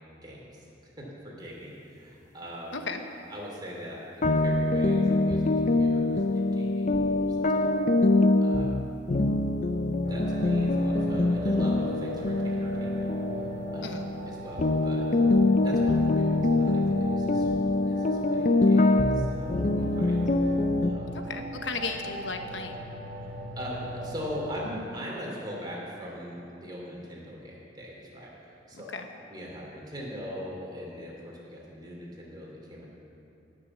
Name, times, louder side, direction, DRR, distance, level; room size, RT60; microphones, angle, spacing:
voice 1, 0.1-0.7 1.0-2.8 3.3-7.5 8.4-8.8 10.1-13.1 13.4-13.9 14.3-15.1 15.6-17.5 17.9-21.2 23.2-28.9 29.3-32.9, equal, 25° right, -4 dB, 3.0 m, -41 dB
sound 1, 4.2-14.3 14.6-20.9, left 2 dB, 40° left, 0.5 m, -24 dB
sound 2, 10.0-24.5, right 1 dB, 55° right, 1.5 m, -39 dB
voice 2, 21.1-22.8 28.7-29.1, left 4 dB, 80° left, 5 dB, 1.1 m, -35 dB
18.0 x 6.7 x 7.2 m, 2.9 s
head